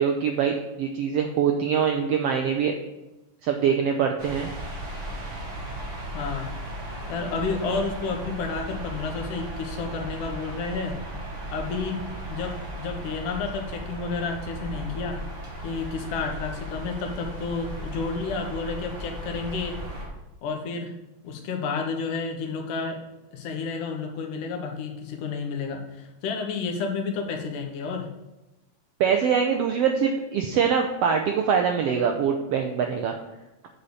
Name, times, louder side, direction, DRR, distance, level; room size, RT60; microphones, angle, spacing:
voice 1, 0.0-2.7 3.4-4.5 29.0-33.1, right 7 dB, 85° right, 4 dB, 1.4 m, -23 dB
sound 1, 4.2-20.1, right 1 dB, 45° right, 2.4 m, -36 dB
voice 2, 6.1-6.5 7.1-11.0 11.5-12.0 12.3-15.2 15.6-19.8 20.4-20.9 21.2-23.0 23.3-28.1, left 4 dB, 90° left, 2 dB, 2.7 m, -31 dB
8.3 x 4.2 x 6.9 m, 1.0 s
omnidirectional pair, 3.5 m